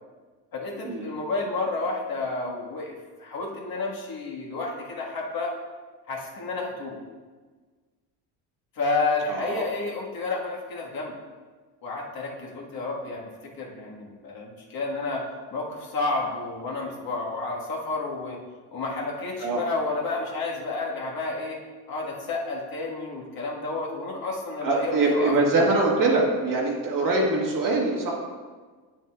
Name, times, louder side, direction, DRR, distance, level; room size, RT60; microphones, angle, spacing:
voice 1, 0.5-5.5 6.1-7.0 8.7-11.1 11.8-15.2 15.5-18.4 18.7-21.6 21.9-25.6, left 3 dB, 50° left, -3 dB, 1.6 m, -31 dB
voice 2, 9.3-9.6 19.4-19.6 24.6-28.1, right 2 dB, 45° right, -2 dB, 1.8 m, -23 dB
8.3 x 7.1 x 2.4 m, 1.4 s
cardioid pair, 105°, 45 cm